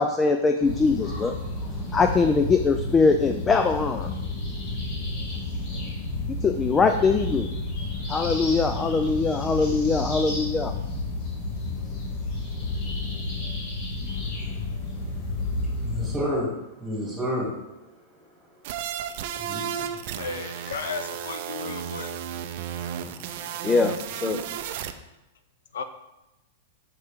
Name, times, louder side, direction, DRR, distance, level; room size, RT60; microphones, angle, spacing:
voice 1, 0.0-1.4 1.9-4.1 6.3-7.5 8.1-10.7 23.1-23.2 23.6-24.4, left 4 dB, 15° left, 6 dB, 0.3 m, -22 dB
sound 1, 0.6-16.2, left 2 dB, 40° left, 2.0 m, -31 dB
voice 2, 14.1-18.3 18.5-20.7, left 1 dB, 5° right, -5 dB, 2.6 m, -34 dB
sound 2, 18.6-24.9, right 9 dB, 55° right, 0.5 m, -33 dB
voice 3, 20.2-22.1 25.7-25.8, left 5 dB, 80° left, 9 dB, 0.5 m, -34 dB
6.4 x 5.8 x 3.5 m, 0.95 s
hypercardioid pair, 145°, 0 cm